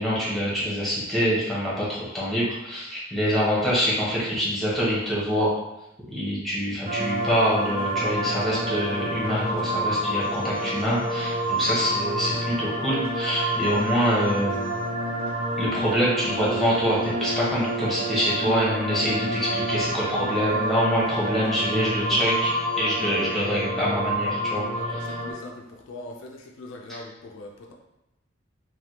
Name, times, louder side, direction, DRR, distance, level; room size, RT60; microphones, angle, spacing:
voice 1, 0.0-5.5 6.1-14.6 15.6-25.0, equal, ahead, -7 dB, 0.9 m, -25 dB
sound 1, 6.9-25.3, right 1 dB, 30° right, 0.8 m, -28 dB
voice 2, 24.7-27.7, left 2 dB, 65° left, 1 dB, 0.4 m, -41 dB
3.3 x 2.2 x 2.8 m, 0.91 s
head